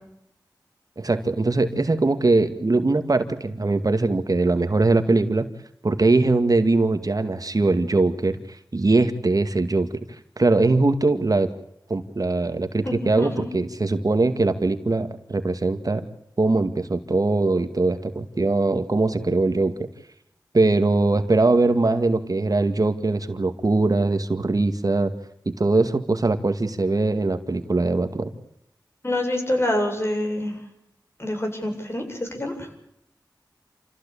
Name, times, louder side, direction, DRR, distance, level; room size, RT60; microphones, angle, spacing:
voice 1, 1.0-5.5 5.8-8.4 8.7-9.9 10.4-11.5 11.9-16.1 16.4-19.7 20.5-25.1 25.5-28.3, right 3 dB, 50° right, 8 dB, 2.1 m, -21 dB
voice 2, 12.8-13.5 29.0-30.6 31.2-32.7, left 1 dB, 35° left, 4 dB, 7.8 m, -26 dB
28.5 x 15.5 x 8.6 m, 0.77 s
cardioid pair, 45°, 8 cm